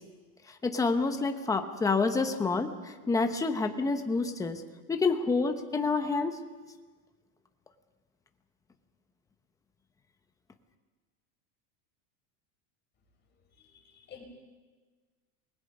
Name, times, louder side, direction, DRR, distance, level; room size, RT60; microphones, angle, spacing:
voice 1, 0.6-2.7 3.1-4.6 4.9-6.4, left 4 dB, 10° left, 6 dB, 0.9 m, -28 dB
voice 2, 13.6-14.2, left 8 dB, 25° left, 0 dB, 5.4 m, -51 dB
28.0 x 20.5 x 5.4 m, 1.4 s
supercardioid pair, 165°, 42 cm